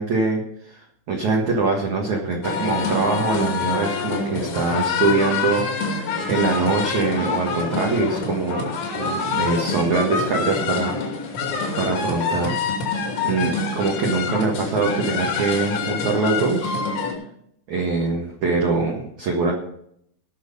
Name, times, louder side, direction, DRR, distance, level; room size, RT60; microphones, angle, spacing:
voice 1, 0.0-8.7 9.0-10.9 11.3-11.4 11.8-12.6 13.2-16.8 17.7-19.5, right 3 dB, 65° right, 0 dB, 1.9 m, -23 dB
sound 1, 2.4-17.1, left 4 dB, 80° left, 5.3 m, -26 dB
18.5 x 6.5 x 5.3 m, 0.71 s
omnidirectional pair, 5.7 m